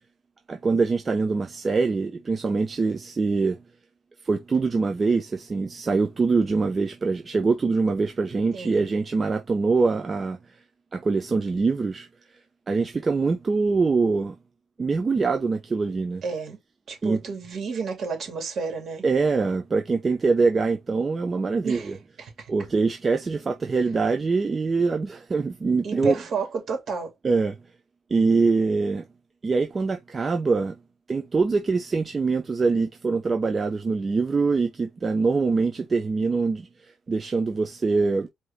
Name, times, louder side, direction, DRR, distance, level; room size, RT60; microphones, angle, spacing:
voice 1, 0.5-3.6 4.2-10.4 10.9-12.1 12.7-14.3 14.8-16.2 17.0-17.2 19.0-22.0 22.5-26.2 27.2-27.6 28.1-29.0 29.4-30.8 31.1-36.7 37.1-38.3, right 4 dB, 35° right, 0.6 m, -24 dB
voice 2, 8.5-8.9 16.2-16.6 16.9-19.0 21.6-21.9 22.2-22.5 25.8-27.1, right 4 dB, 60° right, 2.4 m, -30 dB
4.7 x 2.9 x 3.5 m
cardioid pair, 90°, 0 cm